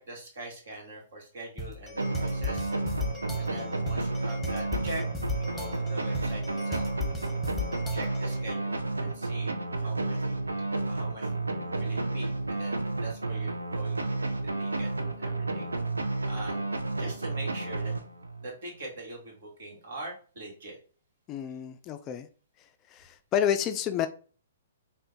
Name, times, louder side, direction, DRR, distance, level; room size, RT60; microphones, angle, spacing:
voice 1, 0.0-2.7 3.4-5.0 5.4-6.9 7.9-11.3 11.8-14.3 14.6-15.7 16.2-16.6 17.0-18.0 18.4-20.8, right 2 dB, 60° right, 1.8 m, -43 dB
sound 1, 1.6-8.4, left 2 dB, ahead, 1.0 m, -37 dB
sound 2, 2.0-18.5, right 2 dB, 90° right, 0.5 m, -31 dB
voice 2, 21.3-22.3 22.9-24.1, left 9 dB, 30° left, 0.4 m, -29 dB
3.8 x 2.4 x 3.5 m
hypercardioid pair, 125°, 0 cm